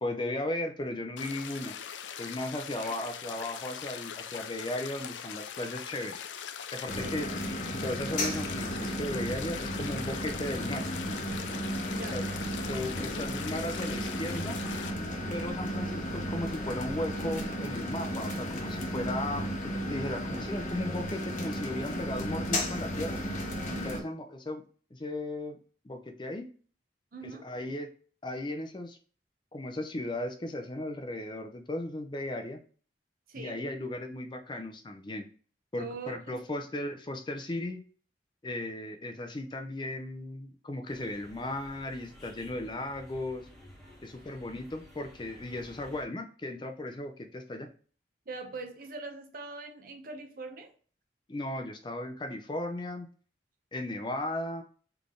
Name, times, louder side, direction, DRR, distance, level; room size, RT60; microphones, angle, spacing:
voice 1, 0.0-1.8 2.2-6.2 6.7-7.3 7.7-10.9 12.1-12.2 12.7-14.6 15.3-23.2 23.7-24.6 24.9-25.6 25.8-26.5 27.2-27.9 28.2-29.0 29.5-32.6 33.3-35.3 35.7-37.8 38.4-43.5 44.0-47.7 51.3-53.1 53.7-54.6, left 1 dB, 25° left, 6 dB, 0.5 m, -36 dB
sound 1, 1.2-14.9, left 8 dB, 85° left, 0.4 m, -41 dB
sound 2, 6.9-24.0, equal, 45° left, 0.8 m, -34 dB
voice 2, 11.9-12.2 23.7-24.1 27.1-27.5 33.3-33.6 35.8-36.4 48.3-50.7, right 3 dB, 50° right, 5 dB, 0.7 m, -42 dB
sound 3, 40.9-46.0, equal, ahead, 1.2 m, -53 dB
4.0 x 3.4 x 3.6 m, 0.42 s
head